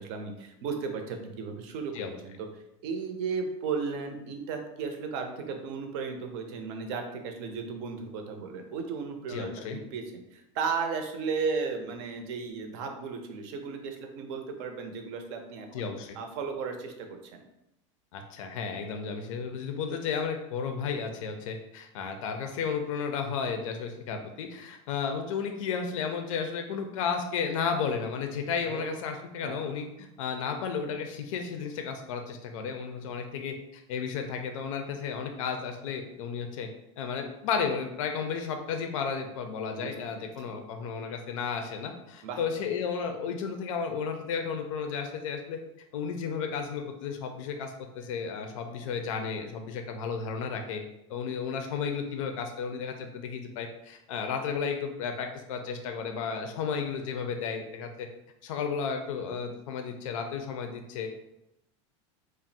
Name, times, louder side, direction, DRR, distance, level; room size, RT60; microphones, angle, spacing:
voice 1, 0.0-15.9 16.1-17.1 17.3-17.4 28.6-28.9 29.4-29.6 39.7-39.9 40.2-40.3 42.2-42.4, right 5 dB, 60° right, 4 dB, 0.6 m, -35 dB
voice 2, 9.3-9.8 15.7-16.2 18.1-36.7 37.0-45.6 45.9-50.8 51.1-58.1 58.4-61.1, left 6 dB, 85° left, 5 dB, 0.4 m, -33 dB
2.4 x 2.0 x 3.9 m, 0.87 s
supercardioid pair, 140°, 17 cm